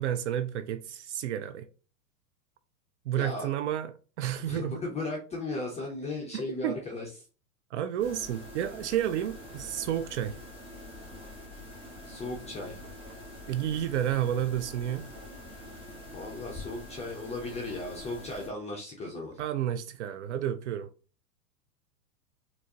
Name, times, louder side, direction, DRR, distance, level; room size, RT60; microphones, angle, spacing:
voice 1, 0.0-1.7 3.1-3.9 4.2-4.8 6.3-6.8 7.7-10.4 13.5-15.1 19.4-20.9, right 11 dB, 50° right, 0.4 m, -31 dB
voice 2, 3.2-3.5 4.5-7.1 12.0-12.8 16.1-19.4, left 2 dB, 15° left, 0.7 m, -36 dB
sound 1, 8.0-18.5, left 1 dB, 10° right, 1.5 m, -45 dB
4.4 x 2.7 x 2.8 m
figure-of-eight pair, 100°, 45 cm